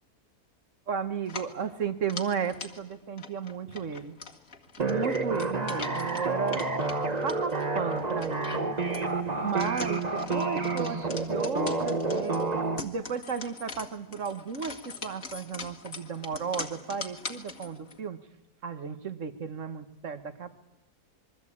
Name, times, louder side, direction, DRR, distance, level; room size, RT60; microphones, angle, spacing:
voice 1, 0.9-4.2 4.8-6.7 7.2-8.8 9.4-12.4 12.8-18.2 18.6-20.5, right 6 dB, 50° right, 11 dB, 1.8 m, -34 dB
sound 1, 1.2-18.0, left 4 dB, 55° left, 2.3 m, -43 dB
sound 2, 4.8-12.8, right 3 dB, 25° right, 1.4 m, -29 dB
26.5 x 22.5 x 8.7 m, 0.90 s
omnidirectional pair, 1.7 m